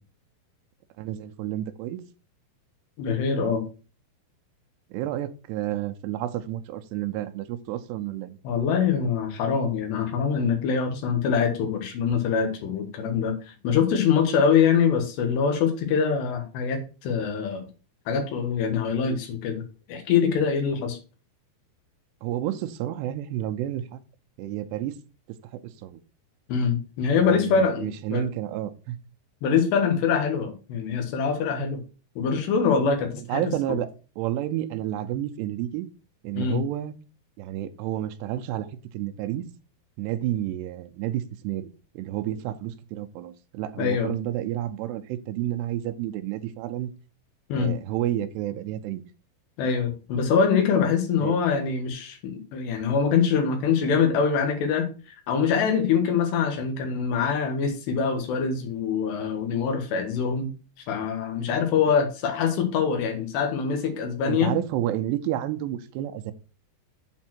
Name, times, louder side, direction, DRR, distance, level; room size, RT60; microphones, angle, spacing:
voice 1, 1.0-2.0 4.9-8.4 22.2-23.8 24.4-25.0 25.8-26.0 27.2-29.0 33.3-35.9 36.2-36.9 37.4-38.7 38.9-39.5 40.0-41.7 42.0-46.9 47.6-49.0 51.2-51.4 64.2-66.3, right 13 dB, 85° right, 2.7 m, -30 dB
voice 2, 3.0-3.6 8.4-17.6 18.1-19.6 19.9-21.0 26.5-28.3 29.4-31.8 32.2-33.8 36.4-36.6 43.8-44.1 47.5-47.7 49.6-54.9 55.3-60.5 60.9-64.5, left 6 dB, 80° left, 3.8 m, -24 dB
8.3 x 4.3 x 6.0 m
omnidirectional pair, 4.9 m